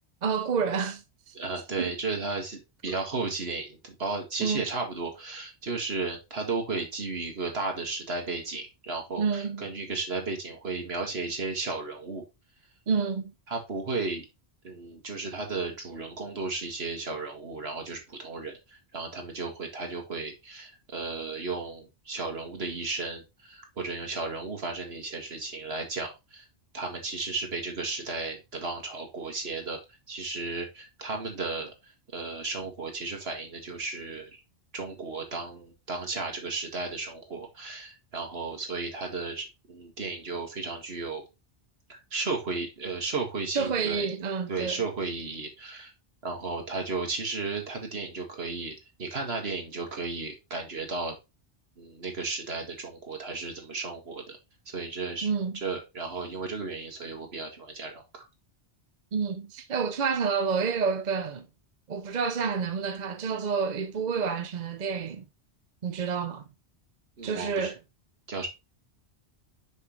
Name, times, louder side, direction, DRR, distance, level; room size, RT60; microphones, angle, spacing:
voice 1, 0.2-1.3 1.8-1.9 4.4-4.6 9.2-9.6 12.9-13.3 43.5-44.8 55.2-55.6 59.1-61.5 61.9-65.2 65.8-66.4 67.2-67.8, right 5 dB, 45° right, 0.7 m, -29 dB
voice 2, 1.3-12.2 13.5-14.3 14.6-26.5 26.7-29.8 30.1-34.4 34.7-41.2 41.9-44.1 44.5-45.9 46.2-51.2 51.8-54.4 54.7-55.3 55.5-58.2 67.2-67.7 68.3-68.5, right 3 dB, 65° right, 2.1 m, -34 dB
6.5 x 5.9 x 3.2 m
omnidirectional pair, 1.1 m